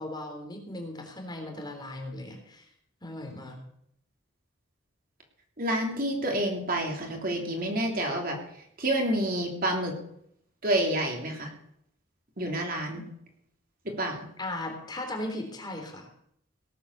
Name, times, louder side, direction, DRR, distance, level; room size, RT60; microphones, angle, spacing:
voice 1, 0.0-2.7 3.0-3.6 14.4-16.1, left 1 dB, 20° left, 2 dB, 3.4 m, -37 dB
voice 2, 5.6-8.4 8.8-9.9 10.6-11.5 12.4-13.0 14.0-14.2, right 1 dB, 50° right, 1 dB, 3.3 m, -28 dB
18.0 x 8.7 x 6.7 m, 0.70 s
head